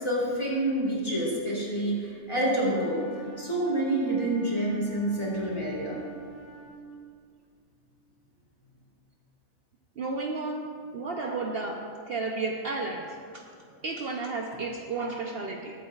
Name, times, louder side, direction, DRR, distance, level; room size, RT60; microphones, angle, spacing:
voice 1, 0.0-6.0, right 1 dB, 20° left, -6 dB, 3.1 m, -28 dB
Wind instrument woodwind instrument, 2.6-7.1, right 6 dB, 85° right, 1.6 m, -46 dB
voice 2, 10.0-10.6 10.9-11.8 12.1-13.1 13.3-13.4 13.8-15.7, right 3 dB, 55° right, 1 dB, 0.9 m, -32 dB
22.0 x 8.4 x 2.4 m, 2.2 s
omnidirectional pair, 1.3 m